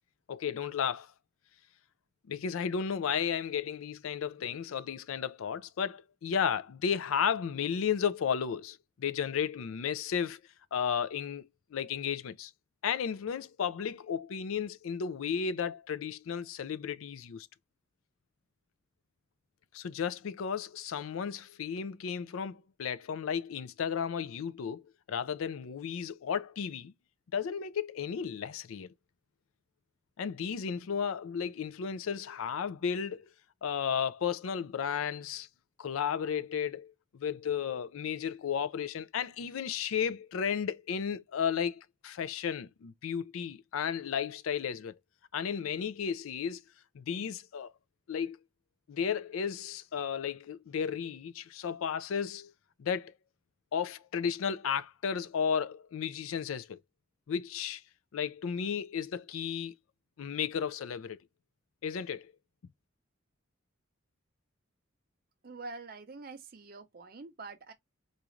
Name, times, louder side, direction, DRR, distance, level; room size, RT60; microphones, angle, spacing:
voice 1, 0.3-1.1 2.3-10.4 10.7-12.5 12.8-17.5 19.7-24.8 25.1-26.9 27.3-28.9 30.2-33.3 33.6-35.5 35.8-45.0 45.3-46.6 46.9-47.7 48.1-48.4 48.9-52.5 52.8-53.1 53.7-56.8 57.3-57.8 58.1-59.7 60.2-61.2 61.8-62.3, left 7 dB, 80° left, 0.4 m, -33 dB
voice 2, 65.4-67.7, right 3 dB, 45° right, 0.5 m, -45 dB
4.0 x 2.4 x 3.0 m
head